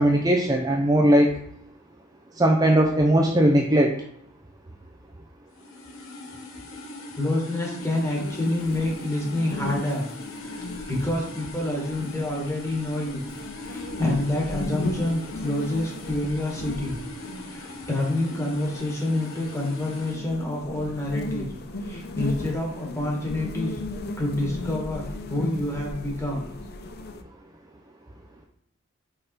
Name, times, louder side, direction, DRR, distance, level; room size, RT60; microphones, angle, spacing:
voice 1, 0.0-1.4 2.4-4.0, right 1 dB, 20° right, 1 dB, 0.5 m, -19 dB
sound 1, 5.5-20.2, left 2 dB, 70° left, 1.0 m, -40 dB
voice 2, 7.2-10.0 10.4-13.2 13.6-17.0 17.4-21.5 21.8-23.8 24.2-26.4, left 1 dB, 15° left, -2 dB, 1.6 m, -28 dB
sound 2, 7.8-27.2, left 2 dB, 50° left, 0.5 m, -37 dB
5.4 x 4.1 x 4.2 m, 0.72 s
head